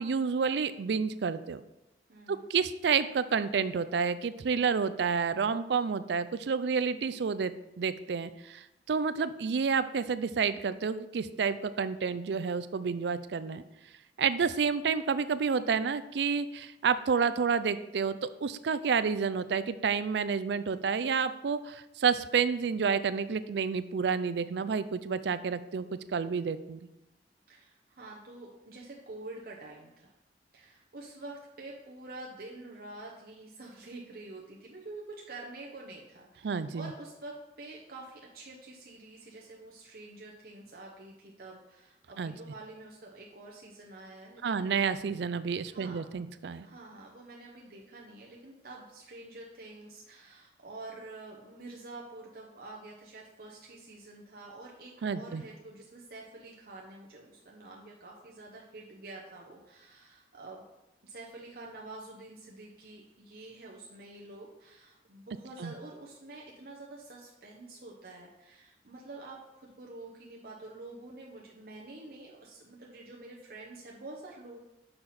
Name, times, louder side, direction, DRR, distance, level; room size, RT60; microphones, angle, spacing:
voice 1, 0.0-1.6 2.3-13.6 14.2-25.9 26.1-26.8 36.4-36.9 42.2-42.3 44.4-46.7 55.0-55.4 65.6-65.7, right 6 dB, 75° right, 13 dB, 0.4 m, -29 dB
voice 2, 2.1-2.4 27.5-30.1 30.5-44.6 45.7-46.0 46.6-60.7 61.0-74.6, right 2 dB, 55° right, -2 dB, 0.9 m, -47 dB
6.7 x 5.6 x 4.2 m, 0.95 s
head